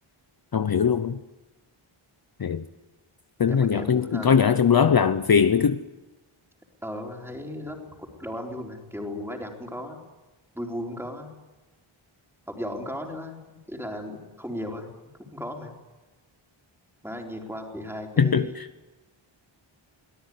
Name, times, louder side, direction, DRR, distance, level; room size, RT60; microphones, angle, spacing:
voice 1, 0.5-1.2 2.4-2.6 3.4-5.8 18.2-18.7, left 7 dB, 45° left, 0.8 m, -21 dB
voice 2, 3.5-4.5 6.8-10.0 10.5-11.3 12.5-15.0 15.3-15.7 17.0-18.5, left 1 dB, 5° right, 4.1 m, -36 dB
24.0 x 18.0 x 9.5 m
wide cardioid pair, 150°, 50 cm